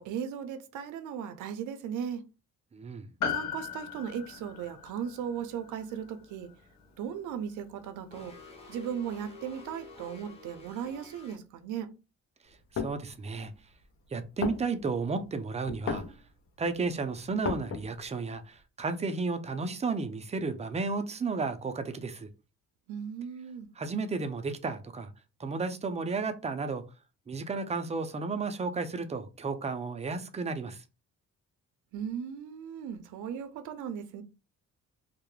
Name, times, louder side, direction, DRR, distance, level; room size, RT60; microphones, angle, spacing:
voice 1, 0.0-2.2 3.3-6.5 6.9-8.3 8.7-11.9 22.9-23.7 31.9-34.2, right 8 dB, 80° right, 0.5 m, -37 dB
voice 2, 2.7-3.1 12.7-13.5 14.1-16.0 16.6-22.3 23.8-25.1 25.4-26.8 27.3-30.8, right 4 dB, 20° right, 0.4 m, -33 dB
Piano, 3.2-7.8 8.1-8.2, left 7 dB, 65° left, 0.8 m, -38 dB
sound 1, 8.1-11.4, left 3 dB, 20° left, 0.9 m, -49 dB
sound 2, 12.5-13.0 13.7-13.8 14.2-14.3 14.4-15.1 15.6-16.2 16.6-16.7 16.9-18.1, left 6 dB, 45° left, 0.5 m, -34 dB
2.3 x 2.0 x 3.0 m
cardioid pair, 90°, 30 cm